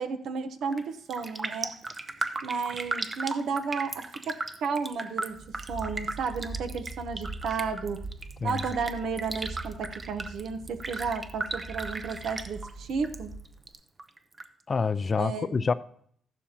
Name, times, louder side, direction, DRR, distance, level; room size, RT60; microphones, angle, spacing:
voice 1, 0.0-1.7 2.4-8.0 8.4-13.3 15.2-15.7, right 5 dB, 70° right, 0.9 m, -33 dB
Raindrop, 0.6-0.8 1.1-13.2 13.4-14.4 14.8-14.9, right 3 dB, 30° right, 0.6 m, -36 dB
sound 1, 5.3-13.7, right 3 dB, 45° right, 4.3 m, -42 dB
voice 2, 14.7-15.7, left 5 dB, 35° left, 0.4 m, -27 dB
14.0 x 11.5 x 2.9 m
cardioid pair, 90°, 0 cm